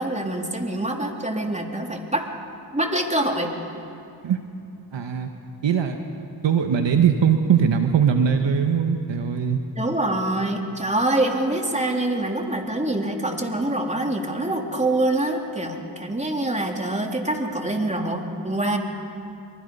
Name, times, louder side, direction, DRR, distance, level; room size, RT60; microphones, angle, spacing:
voice 1, 0.0-2.3 2.7-3.5 9.7-18.8, right 1 dB, 15° right, 2 dB, 3.4 m, -25 dB
voice 2, 4.9-5.3 5.6-6.0 6.4-9.6, right 7 dB, 65° right, 5 dB, 1.5 m, -20 dB
26.0 x 24.0 x 5.5 m, 2.6 s
cardioid pair, 55°, 47 cm